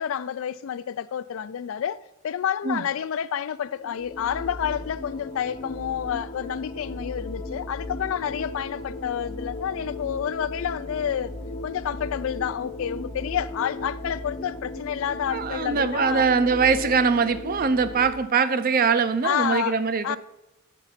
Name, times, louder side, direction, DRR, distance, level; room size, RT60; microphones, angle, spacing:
voice 1, 0.0-11.3 11.6-16.3 19.2-19.8 20.0-20.2, left 9 dB, 65° left, 0.3 m, -29 dB
sound 1, 3.7-18.1, left 1 dB, 25° left, 0.6 m, -36 dB
voice 2, 15.3-20.2, right 5 dB, 45° right, 0.5 m, -22 dB
6.8 x 4.6 x 5.6 m
head